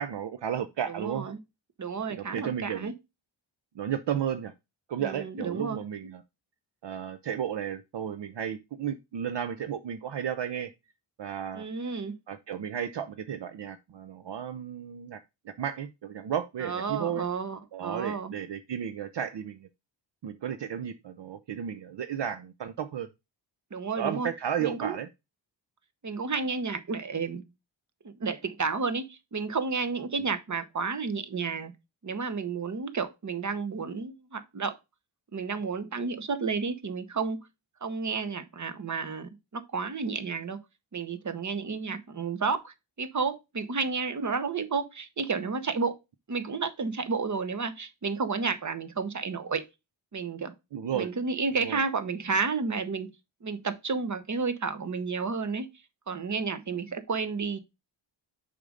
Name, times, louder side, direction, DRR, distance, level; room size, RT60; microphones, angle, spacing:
voice 1, 0.0-1.3 2.1-2.9 3.7-4.5 4.9-6.2 6.8-10.7 11.2-11.6 12.3-17.2 17.7-19.7 20.2-23.1 24.0-25.1 50.7-51.1 51.6-51.8, right 9 dB, 65° right, 0.7 m, -33 dB
voice 2, 0.9-1.4 1.8-2.9 5.0-6.1 11.5-12.1 16.6-18.3 23.7-24.3 24.6-25.0 26.0-27.5 28.0-31.7 32.0-34.7 35.3-37.4 37.8-40.6 40.9-46.0 46.3-49.6 50.1-50.5 50.9-53.1 53.4-55.7 56.1-57.6, right 4 dB, 40° right, 1.0 m, -31 dB
6.6 x 5.2 x 3.8 m
wide cardioid pair, 100°, 46 cm